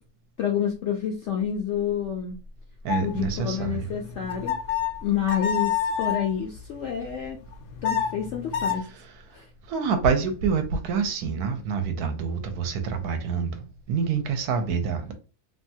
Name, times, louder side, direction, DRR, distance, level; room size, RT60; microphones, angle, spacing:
voice 1, 0.4-2.4 3.0-4.6 5.0-7.4 7.8-8.9 9.3-9.5, left 8 dB, 70° left, 0.6 m, -28 dB
voice 2, 2.8-3.9 8.9-15.1, right 6 dB, 75° right, 1.1 m, -27 dB
sound 1, 2.9-6.3 7.5-8.8, left 8 dB, 85° left, 1.2 m, -29 dB
2.8 x 2.2 x 2.7 m
omnidirectional pair, 1.7 m